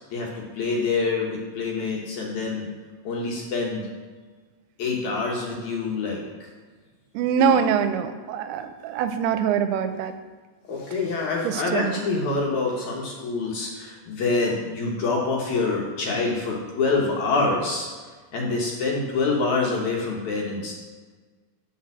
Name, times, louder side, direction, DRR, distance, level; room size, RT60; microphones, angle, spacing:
voice 1, 0.1-2.7 3.0-3.8 4.8-6.2 7.5-7.6 10.7-17.9 18.3-20.7, left 3 dB, 65° left, -2 dB, 2.2 m, -26 dB
voice 2, 7.1-10.2 11.4-11.9, right 7 dB, 90° right, 9 dB, 2.5 m, -24 dB
8.6 x 4.5 x 7.4 m, 1.4 s
omnidirectional pair, 4.4 m